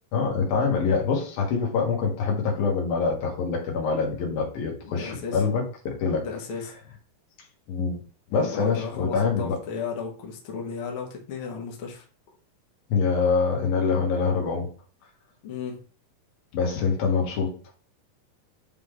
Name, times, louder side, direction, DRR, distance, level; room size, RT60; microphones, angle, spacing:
voice 1, 0.1-6.2 7.7-8.0 8.3-9.6 12.9-14.7 16.5-17.5, left 5 dB, 90° left, 0 dB, 3.4 m, -25 dB
voice 2, 4.8-5.4 6.2-6.7 8.3-12.0 15.4-15.8, left 5 dB, 50° left, 0 dB, 1.8 m, -35 dB
9.4 x 3.7 x 3.3 m, 0.40 s
omnidirectional pair, 4.0 m